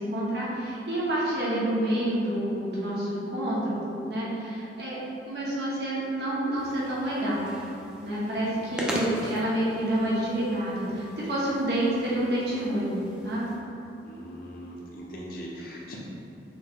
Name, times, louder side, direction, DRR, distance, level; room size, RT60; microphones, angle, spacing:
voice 1, 0.0-5.0 5.3-7.5 8.0-12.9 13.2-13.5, right 1 dB, 65° right, -8 dB, 1.1 m, -28 dB
sound 1, 6.6-13.6, equal, 5° right, 0.4 m, -39 dB
voice 2, 14.0-16.0, equal, 55° left, -4 dB, 0.8 m, -40 dB
6.2 x 2.1 x 3.6 m, 2.9 s
head